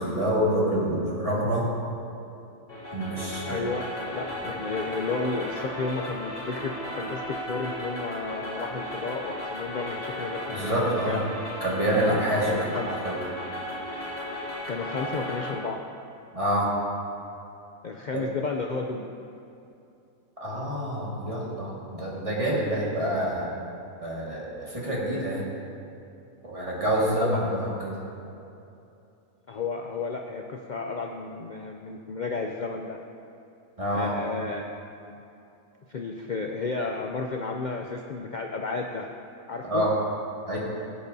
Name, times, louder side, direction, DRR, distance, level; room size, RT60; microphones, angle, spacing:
voice 1, 0.0-1.7 2.9-3.7 10.5-11.2 11.6-13.2 16.3-16.7 18.1-18.2 20.4-23.5 24.0-25.4 26.4-27.9 33.8-34.1 39.6-39.9 40.5-40.6, right 1 dB, 25° right, -6 dB, 1.9 m, -27 dB
sound 1, 2.7-15.5, left 1 dB, 30° left, 2.0 m, -35 dB
voice 2, 3.5-3.8 4.1-11.2 12.5-12.9 14.7-15.8 17.8-19.1 27.2-27.6 29.5-33.0 33.9-34.7 35.1-35.2 35.9-39.1 39.5-39.9, left 4 dB, 90° left, 2 dB, 0.4 m, -32 dB
16.0 x 8.7 x 2.7 m, 2.7 s
omnidirectional pair, 1.5 m